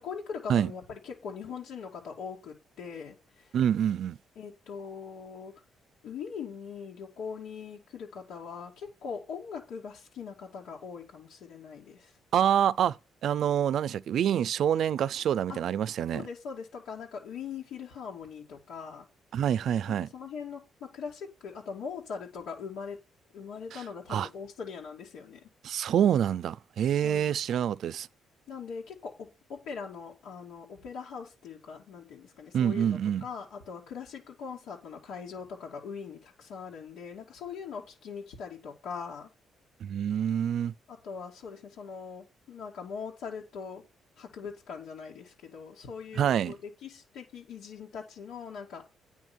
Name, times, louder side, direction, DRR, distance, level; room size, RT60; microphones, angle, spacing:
voice 1, 0.0-3.5 4.4-5.5 6.0-12.1 15.5-15.6 16.1-19.1 19.9-23.0 23.3-25.4 27.0-27.4 28.5-39.3 40.9-43.8 44.2-48.8, left 6 dB, 85° left, 2.4 m, -41 dB
voice 2, 3.5-4.2 12.3-13.0 13.2-16.2 19.3-20.1 24.1-24.3 25.6-28.1 32.5-33.2 39.8-40.7 46.1-46.5, right 9 dB, 70° right, 0.4 m, -26 dB
9.2 x 5.8 x 6.1 m
cardioid pair, 90°, 0 cm